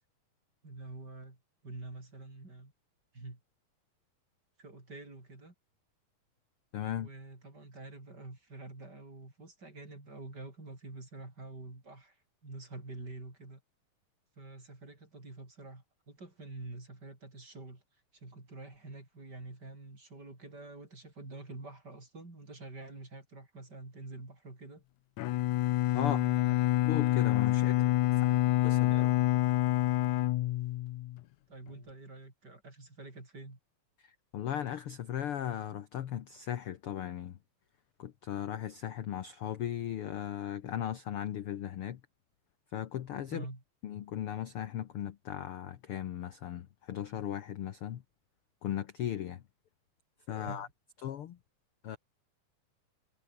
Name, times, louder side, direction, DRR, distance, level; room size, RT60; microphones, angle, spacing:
voice 1, 0.6-2.7 3.1-3.4 4.6-5.5 6.9-13.6 14.4-24.8 25.9-26.8 27.5-28.5 28.9-29.3 31.5-33.6 43.3-43.6 50.4-50.7, right 2 dB, 30° right, 6.2 m, -47 dB
voice 2, 6.7-7.1 25.9-26.2 26.8-27.7 28.6-29.1 34.0-37.4 38.0-42.0 42.7-43.5 43.8-48.0 48.6-49.4 50.3-50.7 51.0-51.4 51.8-52.0, left 10 dB, 60° left, 1.6 m, -37 dB
Bowed string instrument, 25.2-31.2, left 16 dB, 75° left, 2.2 m, -27 dB
omnidirectional pair, 3.6 m